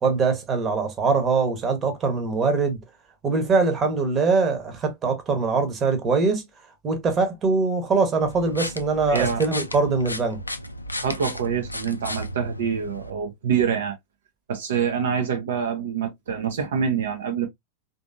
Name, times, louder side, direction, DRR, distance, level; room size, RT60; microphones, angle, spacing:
voice 1, 0.0-2.8 3.2-6.4 6.8-10.4, right 4 dB, 25° right, 1.0 m, -22 dB
sound 1, 8.2-13.1, left 1 dB, 85° left, 0.4 m, -34 dB
voice 2, 9.1-9.4 11.0-14.0 14.5-17.5, right 7 dB, 60° right, 0.6 m, -26 dB
3.4 x 2.7 x 2.5 m
figure-of-eight pair, 90°, 0 cm